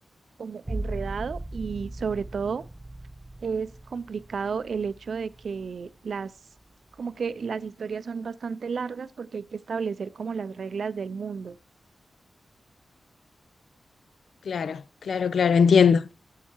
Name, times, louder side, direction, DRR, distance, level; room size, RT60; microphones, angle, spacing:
voice 1, 0.4-2.6 3.4-6.3 7.0-11.6, right 5 dB, 70° right, 0.4 m, -32 dB
sound 1, 0.6-6.1 6.6-7.2, right 1 dB, 15° right, 0.6 m, -39 dB
voice 2, 14.5-16.1, left 6 dB, 85° left, 0.4 m, -21 dB
10.0 x 7.4 x 4.4 m
wide cardioid pair, 110°, 0 cm